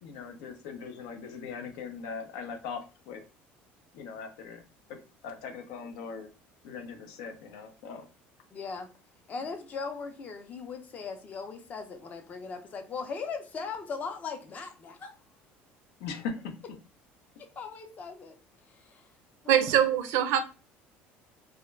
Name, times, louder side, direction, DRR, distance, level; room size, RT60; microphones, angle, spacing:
voice 1, 0.0-3.2 3.9-4.6 4.9-6.3 6.6-8.1 16.0-16.5, left 5 dB, 85° left, 0.5 m, -40 dB
voice 2, 8.5-8.9 9.3-15.1 17.6-18.3 18.7-19.1 19.4-19.7, left 5 dB, 35° left, 0.5 m, -39 dB
voice 3, 19.5-20.4, right 9 dB, 75° right, 0.4 m, -23 dB
2.4 x 2.1 x 3.1 m
cardioid pair, 140°, 5 cm